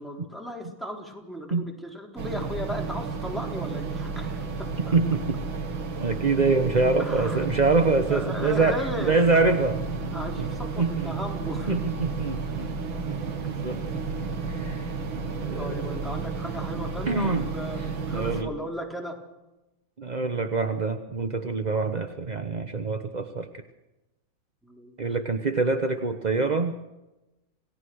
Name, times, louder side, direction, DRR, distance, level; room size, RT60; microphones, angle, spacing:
voice 1, 0.0-4.5 4.8-5.0 7.0-7.4 8.1-9.3 10.1-11.8 15.6-17.8 18.1-19.2 24.6-25.2, equal, ahead, 0 dB, 4.0 m, -36 dB
sound 1, 2.2-18.4, right 4 dB, 75° right, 2.6 m, -32 dB
voice 2, 4.9-5.4 6.0-8.8 9.1-9.8 10.8-11.1 11.7-12.7 13.1-13.8 14.2-15.0 15.4-16.0 17.1-17.4 18.1-18.5 20.0-23.6 25.0-26.7, right 3 dB, 35° right, 7 dB, 0.8 m, -25 dB
27.5 x 18.0 x 6.4 m, 1.0 s
omnidirectional pair, 2.2 m